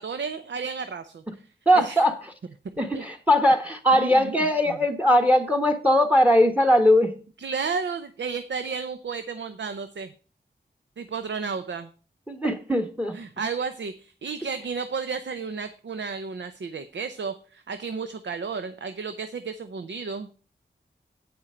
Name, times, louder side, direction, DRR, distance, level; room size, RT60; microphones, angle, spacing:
voice 1, 0.0-1.4 1.7-2.0 2.9-3.0 3.9-4.8 7.4-10.1 11.0-11.9 13.1-20.3, right 5 dB, 80° right, 0.7 m, -32 dB
voice 2, 1.7-2.1 2.8-7.1 12.3-13.2, equal, 10° right, 1.2 m, -20 dB
8.7 x 8.7 x 4.4 m
wide cardioid pair, 85°, 18 cm